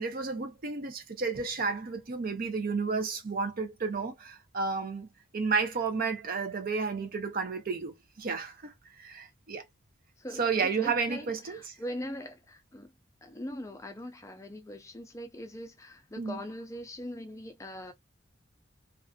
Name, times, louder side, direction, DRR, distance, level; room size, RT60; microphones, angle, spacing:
voice 1, 0.0-5.1 5.3-8.7 9.0-9.6 10.4-11.7 16.2-16.4, right 4 dB, 50° right, 0.6 m, -32 dB
voice 2, 10.2-12.9 13.2-17.9, equal, 15° left, 0.5 m, -41 dB
2.4 x 2.4 x 2.2 m
head